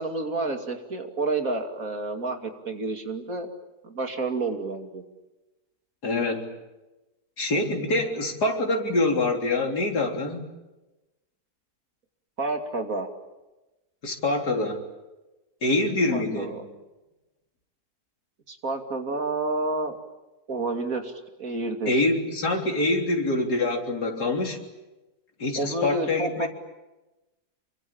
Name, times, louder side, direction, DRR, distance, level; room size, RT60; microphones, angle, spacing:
voice 1, 0.0-3.5 3.8-5.0 12.4-13.1 16.1-16.6 18.5-20.0 20.5-21.9 25.6-26.5, right 3 dB, 55° right, 5 dB, 3.1 m, -29 dB
voice 2, 6.0-6.5 7.4-10.5 14.0-14.9 15.6-16.7 21.9-24.6 25.4-26.5, left 2 dB, 75° left, 3 dB, 4.1 m, -25 dB
27.5 x 24.5 x 8.8 m, 1.1 s
omnidirectional pair, 1.7 m